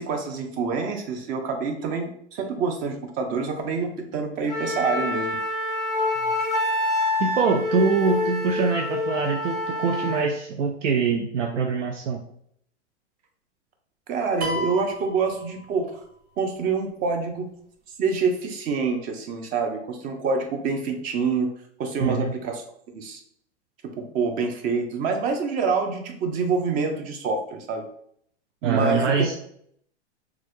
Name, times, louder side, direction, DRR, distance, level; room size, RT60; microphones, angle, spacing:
voice 1, 0.0-5.4 14.1-15.9 16.4-17.5 18.0-21.5 21.8-22.6 22.9-23.2 24.0-27.8 28.6-29.4, right 4 dB, 25° right, 4 dB, 0.4 m, -26 dB
Wind instrument woodwind instrument, 4.5-10.3, left 2 dB, ahead, 0.8 m, -26 dB
voice 2, 7.2-12.2 22.0-22.3 28.6-29.4, right 5 dB, 90° right, 3 dB, 0.5 m, -24 dB
sound 1, 14.4-16.1, left 1 dB, 60° right, 1.0 m, -33 dB
3.0 x 2.4 x 3.0 m, 0.67 s
hypercardioid pair, 120°, 35 cm